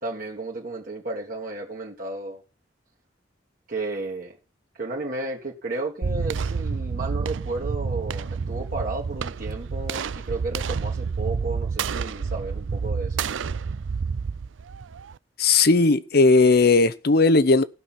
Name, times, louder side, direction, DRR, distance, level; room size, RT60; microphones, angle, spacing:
voice 1, 0.0-2.4 3.7-4.3 4.7-13.3, right 2 dB, 50° right, 1.8 m, -33 dB
sound 1, 6.0-15.2, right 5 dB, 90° right, 0.5 m, -29 dB
voice 2, 15.4-17.6, left 3 dB, 55° left, 0.8 m, -17 dB
16.0 x 5.9 x 5.8 m
head